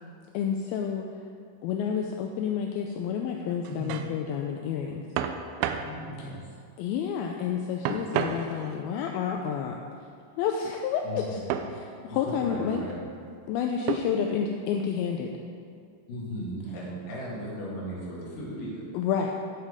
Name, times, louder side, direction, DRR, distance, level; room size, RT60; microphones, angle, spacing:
voice 1, 0.3-1.0 1.6-5.0 6.8-9.8 10.4-11.4 12.0-12.8 13.5-15.3 18.9-19.3, left 7 dB, 85° left, 2 dB, 2.2 m, -29 dB
sound 1, 3.5-4.1 5.2-5.9 7.9-8.9 11.5-11.8 12.5-12.9 13.9-14.3, right 8 dB, 85° right, 2.4 m, -32 dB
voice 2, 3.7-4.0 5.8-6.4 11.0-11.5 12.1-13.0 16.1-18.9, equal, 60° left, -5 dB, 3.4 m, -36 dB
10.5 x 7.3 x 5.0 m, 2.3 s
omnidirectional pair, 4.7 m